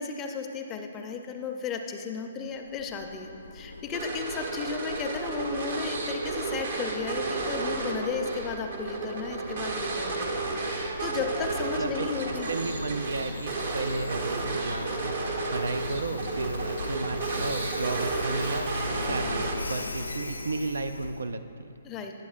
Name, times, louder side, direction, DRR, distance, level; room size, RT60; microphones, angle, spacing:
voice 1, 0.0-12.5 21.8-22.1, left 5 dB, 20° left, 4 dB, 0.5 m, -34 dB
Train, 2.5-21.3, left 3 dB, 90° left, 0.4 m, -39 dB
sound 1, 3.9-19.9, right 3 dB, 55° right, 1.0 m, -32 dB
voice 2, 11.8-21.7, right 3 dB, 80° right, 9 dB, 0.3 m, -34 dB
9.3 x 7.5 x 2.4 m, 2.7 s
figure-of-eight pair, 135°, 0 cm